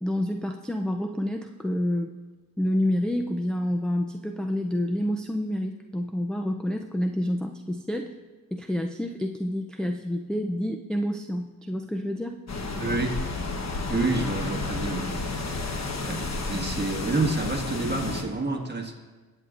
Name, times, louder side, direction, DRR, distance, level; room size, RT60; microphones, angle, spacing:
voice 1, 0.0-2.1 2.6-8.1 8.5-12.4, left 1 dB, ahead, 4 dB, 0.4 m, -28 dB
sound 1, 12.5-18.2, left 3 dB, 45° left, 1.1 m, -31 dB
voice 2, 12.8-13.2 13.9-15.1 16.1-16.2 16.5-18.9, right 3 dB, 30° right, 0 dB, 1.6 m, -28 dB
19.0 x 8.1 x 2.5 m, 1.3 s
cardioid pair, 85°, 36 cm